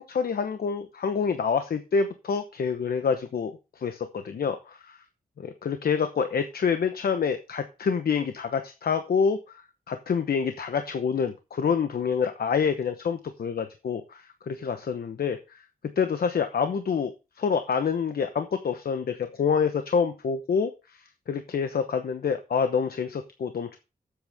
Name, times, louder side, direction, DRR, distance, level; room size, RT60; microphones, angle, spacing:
voice 1, 0.0-5.0 5.4-9.4 9.9-15.6 16.0-17.1 17.4-21.0 21.3-23.8, left 6 dB, 85° left, 8 dB, 0.9 m, -27 dB
11.5 x 8.0 x 3.5 m, 0.29 s
wide cardioid pair, 160°, 15 cm